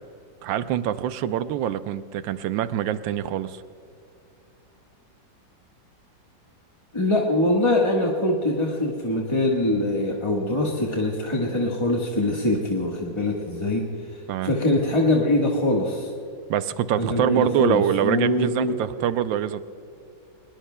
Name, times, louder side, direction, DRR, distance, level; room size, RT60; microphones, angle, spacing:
voice 1, 0.4-3.6 14.3-14.5 16.5-19.6, right 10 dB, 90° right, 12 dB, 1.4 m, -25 dB
voice 2, 6.9-13.8 14.4-16.1 17.0-18.7, left 1 dB, 15° left, -2 dB, 1.2 m, -23 dB
24.0 x 21.0 x 2.2 m, 2.6 s
omnidirectional pair, 2.0 m